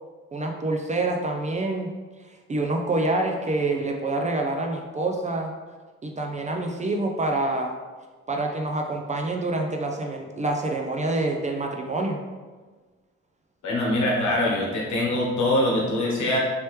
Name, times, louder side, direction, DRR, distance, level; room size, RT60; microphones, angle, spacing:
voice 1, 0.3-1.9 2.5-5.5 6.0-7.7 8.3-12.2, right 2 dB, 25° right, 2 dB, 0.4 m, -26 dB
voice 2, 13.6-16.4, left 1 dB, 70° left, -3 dB, 1.3 m, -23 dB
3.2 x 2.9 x 3.1 m, 1.4 s
cardioid pair, 90°, 30 cm